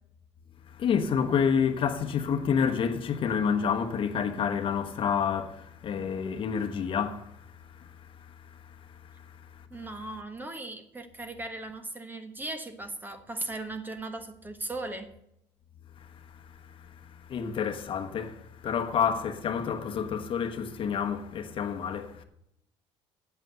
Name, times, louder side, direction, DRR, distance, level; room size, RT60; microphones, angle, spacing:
voice 1, 0.7-9.6 16.3-22.2, left 7 dB, 50° left, 1.2 m, -29 dB
voice 2, 9.7-15.1, right 2 dB, 15° right, 1.3 m, -38 dB
9.1 x 7.8 x 7.9 m
cardioid pair, 135°, 12 cm